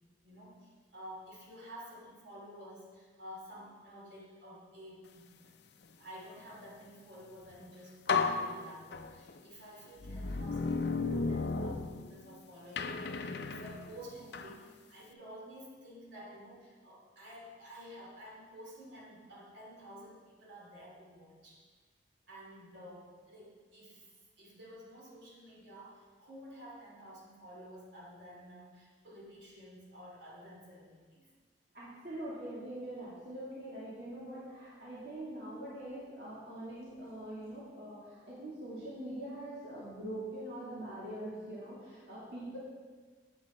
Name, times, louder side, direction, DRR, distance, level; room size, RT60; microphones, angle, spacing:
voice 1, 0.2-5.3 6.0-21.6 22.3-31.3 42.4-42.6, equal, 80° right, -4 dB, 2.8 m, -51 dB
sound 1, 7.5-7.6 8.1-9.4 10.0-12.3 12.8-14.6, left 4 dB, 65° left, 0.5 m, -34 dB
voice 2, 31.7-42.6, right 1 dB, 60° right, -9 dB, 2.3 m, -43 dB
8.6 x 8.1 x 4.3 m, 1.5 s
head